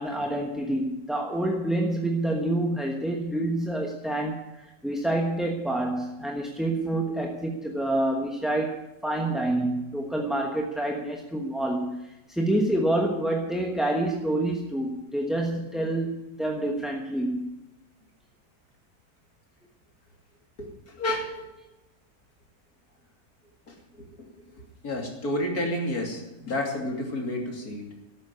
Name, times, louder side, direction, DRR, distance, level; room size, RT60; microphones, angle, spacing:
voice 1, 0.0-17.5, right 1 dB, ahead, 1 dB, 1.0 m, -27 dB
voice 2, 20.6-21.5 23.7-27.9, left 1 dB, 70° left, 1 dB, 3.3 m, -31 dB
13.0 x 8.3 x 9.5 m, 0.98 s
omnidirectional pair, 1.6 m